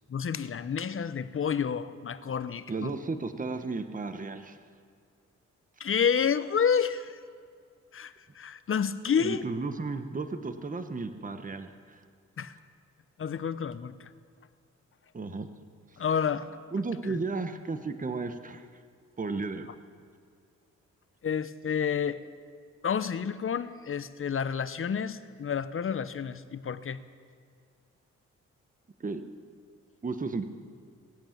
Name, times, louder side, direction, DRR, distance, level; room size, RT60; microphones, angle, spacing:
voice 1, 0.1-2.9 5.8-7.2 7.9-9.4 12.4-12.5 13.2-13.9 16.0-16.5 17.1-17.2 21.2-22.2 22.8-27.0, left 7 dB, 45° left, 14 dB, 0.8 m, -29 dB
voice 2, 2.7-4.6 9.2-12.0 15.1-15.5 16.7-18.7 19.2-19.7 29.0-29.2 30.0-30.4, right 3 dB, 25° right, 9 dB, 1.1 m, -34 dB
18.0 x 8.8 x 7.3 m, 2.2 s
cardioid pair, 60°, 30 cm